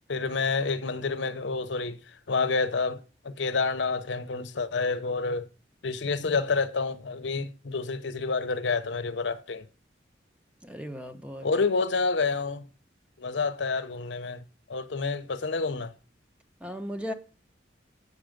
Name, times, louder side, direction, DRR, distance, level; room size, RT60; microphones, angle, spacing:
voice 1, 0.1-2.0 2.3-3.0 3.2-5.4 5.8-9.7 11.4-12.6 13.2-14.4 14.7-15.9, left 4 dB, 80° left, 0.7 m, -28 dB
voice 2, 10.6-11.5 16.6-17.1, equal, 5° right, 0.9 m, -36 dB
8.3 x 6.3 x 5.1 m
head